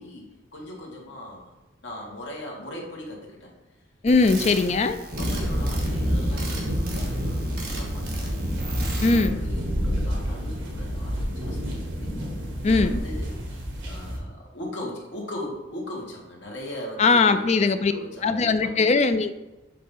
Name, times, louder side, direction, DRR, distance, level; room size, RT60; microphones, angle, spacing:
voice 1, 0.0-1.5 1.8-3.5 5.2-8.4 9.0-12.1 12.6-13.5 13.8-19.0, left 1 dB, 65° left, -2 dB, 1.7 m, -39 dB
voice 2, 4.0-5.0 9.0-9.4 12.6-13.0 17.0-17.9 18.2-19.3, left 4 dB, 35° left, 10 dB, 0.4 m, -20 dB
sound 1, 4.0-9.3, right 2 dB, 50° right, 1.4 m, -37 dB
sound 2, 5.1-14.2, equal, 75° right, 1.5 m, -28 dB
7.5 x 2.9 x 5.4 m, 1.1 s
head